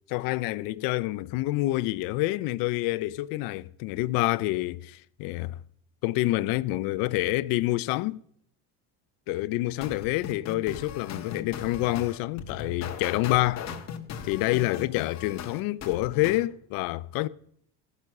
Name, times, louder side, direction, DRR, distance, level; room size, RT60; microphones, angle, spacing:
voice 1, 0.1-5.6 6.0-8.2 9.3-13.6 14.2-17.3, left 18 dB, 70° left, 0.5 m, -27 dB
sound 1, 9.8-16.4, left 7 dB, 45° left, 1.6 m, -38 dB
14.5 x 6.1 x 6.5 m
cardioid pair, 115°, 36 cm